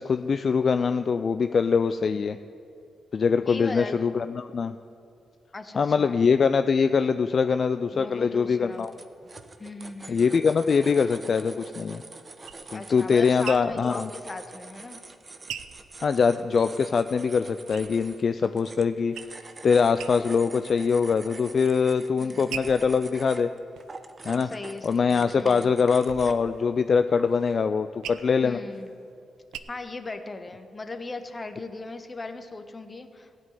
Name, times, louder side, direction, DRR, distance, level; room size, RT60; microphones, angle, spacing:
voice 1, 0.0-2.4 3.1-4.8 5.8-8.9 10.1-12.0 12.7-14.1 16.0-19.1 19.6-23.5 24.2-24.5 24.8-28.6, left 5 dB, 55° left, 10 dB, 0.4 m, -23 dB
voice 2, 3.4-4.0 5.5-6.2 7.9-8.9 9.6-10.2 12.7-15.0 22.2-22.5 24.4-25.7 28.4-28.9 29.7-33.4, left 3 dB, 35° left, 8 dB, 1.1 m, -38 dB
sound 1, 8.6-26.6 27.2-27.6, right 3 dB, 40° right, 0.9 m, -45 dB
sound 2, 12.0-16.7 17.1-18.4 18.8-19.6 19.9-20.6 21.0-21.6 22.1-24.8 25.3-29.6, right 9 dB, 85° right, 0.5 m, -43 dB
15.5 x 5.2 x 9.3 m, 2.4 s
supercardioid pair, 50°, 0 cm